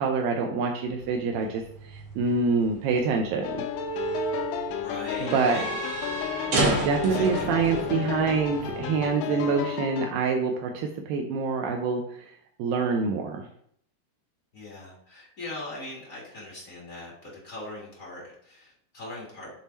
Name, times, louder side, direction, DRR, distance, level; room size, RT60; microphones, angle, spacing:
voice 1, 0.0-3.6 5.2-5.6 6.5-12.3 12.6-13.4, right 4 dB, 80° right, 3 dB, 2.1 m, -26 dB
sound 1, 0.9-9.2, right 2 dB, 60° right, 3.1 m, -32 dB
sound 2, 3.4-10.1, left 10 dB, 85° left, 2.6 m, -33 dB
voice 2, 4.7-5.7 6.8-7.5 7.8-8.3 9.3-9.7 14.5-19.5, left 2 dB, 55° left, -4 dB, 0.9 m, -41 dB
7.4 x 3.6 x 4.1 m, 0.65 s
omnidirectional pair, 4.7 m